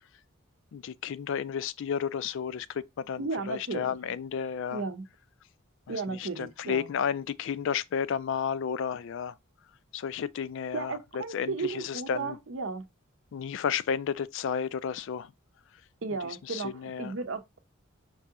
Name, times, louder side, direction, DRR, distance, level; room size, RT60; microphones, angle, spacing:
voice 1, 0.7-4.8 5.9-9.4 9.9-12.4 13.3-15.3 16.2-17.1, left 7 dB, 60° left, 0.3 m, -32 dB
voice 2, 3.2-3.9 4.7-5.0 5.9-6.9 10.7-12.9 16.0-16.7 17.0-17.6, right 4 dB, 65° right, 0.7 m, -34 dB
5.4 x 2.8 x 3.5 m
head